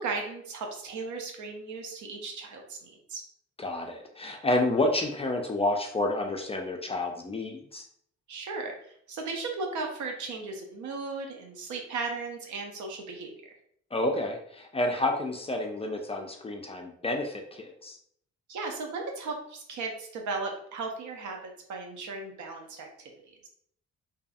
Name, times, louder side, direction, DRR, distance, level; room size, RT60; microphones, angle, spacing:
voice 1, 0.0-3.2 8.3-13.3 18.5-21.4 21.7-23.1 23.4-23.5, right 4 dB, 75° right, 2 dB, 0.7 m, -36 dB
voice 2, 3.6-7.9 13.9-18.0, left 2 dB, 20° left, 2 dB, 0.4 m, -29 dB
2.7 x 2.5 x 2.3 m, 0.66 s
cardioid pair, 90°, 30 cm